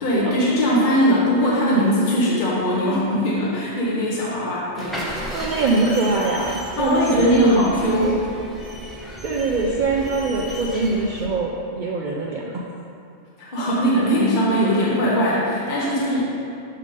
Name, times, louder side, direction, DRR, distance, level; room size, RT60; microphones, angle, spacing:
voice 1, 0.0-4.9 6.8-8.2 13.4-16.2, equal, 45° left, -6 dB, 1.1 m, -20 dB
sound 1, 4.8-11.3, equal, ahead, 0.8 m, -33 dB
voice 2, 5.3-7.7 8.0-8.2 9.2-12.6, right 3 dB, 55° right, -2 dB, 0.6 m, -23 dB
6.6 x 3.7 x 5.1 m, 2.5 s
omnidirectional pair, 1.2 m